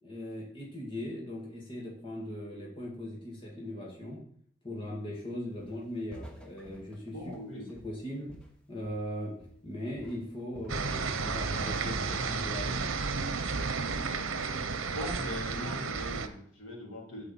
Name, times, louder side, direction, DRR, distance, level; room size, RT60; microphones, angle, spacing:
voice 1, 0.0-4.2 4.6-7.2 7.7-8.3 8.7-9.3 9.6-12.9 15.6-15.7, left 1 dB, 25° left, -4 dB, 2.1 m, -39 dB
Walk footsteps, 5.6-5.9 6.1-9.1 9.4-9.7 10.0-11.4 11.7-12.1, equal, 5° left, 1.1 m, -51 dB
voice 2, 7.1-7.7 14.9-17.3, left 1 dB, 70° left, -2 dB, 3.1 m, -40 dB
sound 1, 10.7-16.3, right 4 dB, 85° right, 0.8 m, -32 dB
8.0 x 4.9 x 7.5 m, 0.65 s
head